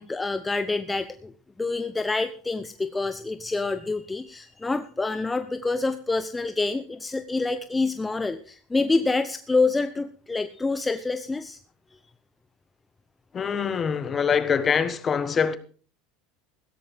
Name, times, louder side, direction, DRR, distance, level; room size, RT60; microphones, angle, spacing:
voice 1, 0.0-11.6, left 3 dB, 15° left, 0.8 m, -27 dB
voice 2, 13.3-15.6, left 6 dB, 30° left, 1.4 m, -24 dB
15.5 x 13.0 x 3.6 m
hypercardioid pair, 85°, 0 cm